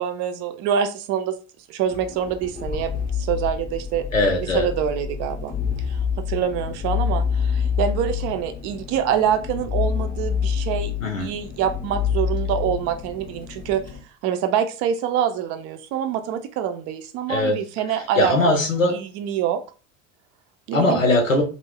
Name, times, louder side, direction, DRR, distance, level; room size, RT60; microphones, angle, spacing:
voice 1, 0.0-1.4 1.7-2.9 3.2-4.0 4.5-5.5 5.9-6.0 6.3-13.8 14.2-18.6 18.9-19.6 20.7-21.0, right 9 dB, 40° right, 8 dB, 0.4 m, -25 dB
sound 1, 1.9-14.0, left 7 dB, 25° left, 0.5 m, -27 dB
voice 2, 4.1-4.7 11.0-11.3 17.3-17.6 17.9-19.0 20.7-21.4, left 2 dB, 85° left, 3 dB, 0.6 m, -20 dB
2.4 x 2.0 x 3.3 m, 0.36 s
figure-of-eight pair, 65°, 38 cm